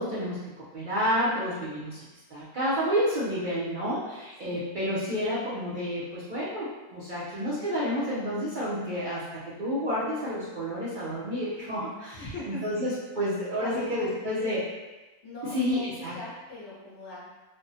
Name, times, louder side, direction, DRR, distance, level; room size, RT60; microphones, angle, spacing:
voice 1, 0.0-2.0 2.3-14.6 15.4-16.1, equal, 50° right, -10 dB, 0.6 m, -30 dB
voice 2, 1.6-2.0 4.4-4.7 12.1-12.9 13.5-14.5 15.2-17.3, left 2 dB, 60° left, -7 dB, 1.0 m, -40 dB
3.3 x 2.1 x 2.6 m, 1.1 s
omnidirectional pair, 1.5 m